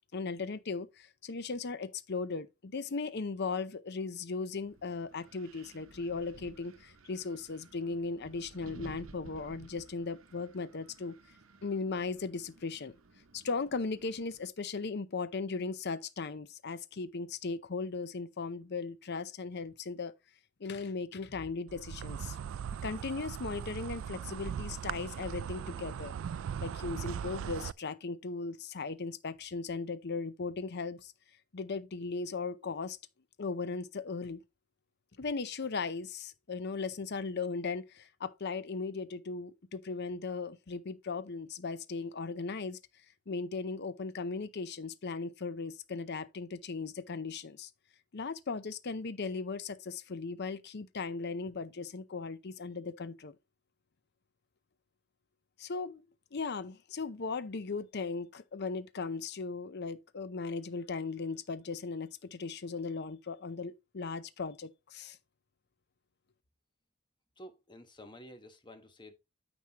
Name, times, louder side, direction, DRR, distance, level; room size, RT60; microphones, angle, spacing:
voice 1, 0.1-11.2 11.6-12.9 13.3-20.1 20.6-22.4 22.8-26.1 26.6-31.1 31.5-33.0 33.4-34.4 35.2-42.8 43.3-47.7 48.1-53.4 55.6-56.1 56.3-65.2, left 4 dB, 55° left, 0.7 m, -37 dB
Wind, 4.5-14.5, right 3 dB, 85° right, 0.9 m, -56 dB
Insect, 21.7-27.7, right 8 dB, 70° right, 0.3 m, -39 dB
voice 2, 67.4-69.1, equal, 20° left, 1.2 m, -51 dB
9.5 x 6.0 x 2.9 m
head